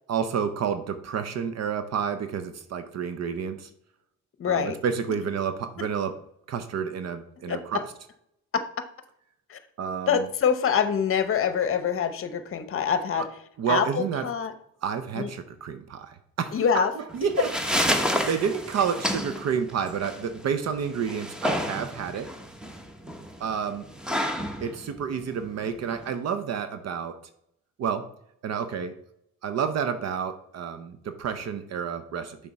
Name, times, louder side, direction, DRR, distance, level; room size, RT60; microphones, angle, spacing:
voice 1, 0.1-3.7 4.5-6.2 6.5-7.9 9.8-10.3 13.2-13.3 13.6-14.3 14.8-17.5 17.9-22.3 23.4-23.9 24.6-27.2 27.8-28.1 28.4-28.9 29.4-32.4, right 7 dB, 60° right, 10 dB, 0.7 m, -30 dB
voice 2, 4.4-4.8 7.5-7.6 8.5-8.6 9.5-9.6 10.1-13.3 13.7-14.5 15.2-15.3 16.5-16.9, left 7 dB, 45° left, 11 dB, 0.8 m, -25 dB
sound 1, 17.1-26.1, equal, 5° right, 0.8 m, -30 dB
6.8 x 3.6 x 5.3 m, 0.75 s
cardioid pair, 90°, 30 cm